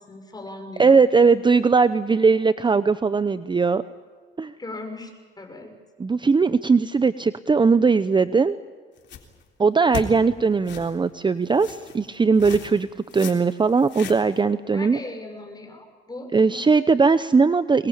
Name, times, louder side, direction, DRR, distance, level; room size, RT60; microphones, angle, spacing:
voice 1, 0.0-1.0 4.6-5.1 5.4-5.7 14.7-16.6, left 2 dB, 20° left, 4 dB, 6.1 m, -38 dB
voice 2, 0.8-3.8 4.4-4.5 6.0-8.6 9.6-15.0 16.3-17.9, right 4 dB, 25° right, 13 dB, 0.7 m, -19 dB
sound 1, 9.0-9.4 9.9-10.1 10.7-10.9 11.6-12.0 12.4-12.8 13.1-13.3 13.7-14.4, left 8 dB, 65° left, 3.6 m, -36 dB
23.5 x 21.0 x 8.7 m, 1.5 s
cardioid pair, 90°, 20 cm